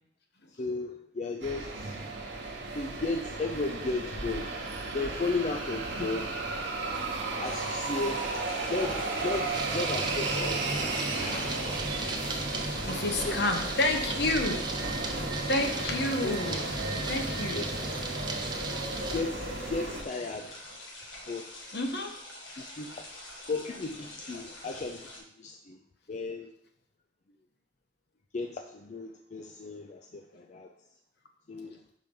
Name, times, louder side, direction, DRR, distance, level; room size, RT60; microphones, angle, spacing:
voice 1, 0.6-2.0 2.7-4.6 4.9-6.3 7.4-8.3 8.7-11.6 13.2-13.7 16.2-16.4 17.5-17.7 19.0-20.7 21.3-21.7 22.6-23.1 23.5-25.1 25.4-25.8 26.1-26.5 28.3-30.7 31.5-31.8, left 3 dB, 40° left, 3 dB, 0.5 m, -35 dB
sound 1, 1.4-20.0, right 2 dB, 70° right, 1.1 m, -34 dB
sound 2, 7.4-25.2, left 1 dB, 90° left, 1.7 m, -46 dB
sound 3, 9.5-19.2, right 2 dB, 25° right, 0.7 m, -36 dB
voice 2, 12.9-14.7 15.5-16.7 17.1-17.7 21.7-22.2, left 2 dB, 65° left, 4 dB, 1.0 m, -29 dB
5.9 x 4.9 x 5.3 m, 0.72 s
head